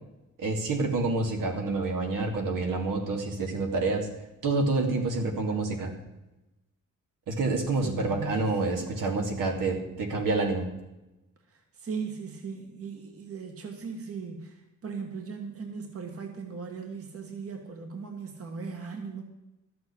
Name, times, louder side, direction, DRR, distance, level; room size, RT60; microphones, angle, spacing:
voice 1, 0.4-4.1 4.4-5.9 7.3-10.7, right 3 dB, 80° right, 2 dB, 2.8 m, -28 dB
voice 2, 7.8-8.6 11.5-19.2, right 5 dB, 45° right, 3 dB, 1.7 m, -38 dB
13.0 x 7.8 x 8.6 m, 0.99 s
wide cardioid pair, 145°, 32 cm